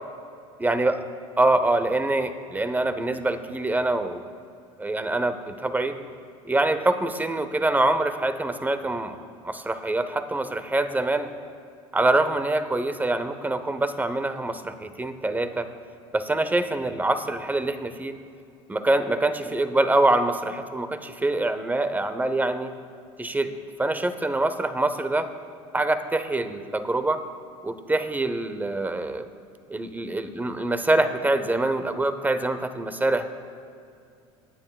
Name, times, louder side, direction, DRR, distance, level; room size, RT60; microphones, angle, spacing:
voice 1, 0.6-1.0 1.4-4.2 4.8-6.0 6.4-9.2 9.4-11.3 11.9-15.7 16.1-18.2 18.7-22.7 23.2-25.3 25.7-27.2 27.6-29.3 29.7-33.3, right 2 dB, 10° right, 11 dB, 0.9 m, -25 dB
23.5 x 9.7 x 2.4 m, 2.4 s
hypercardioid pair, 80°, 15 cm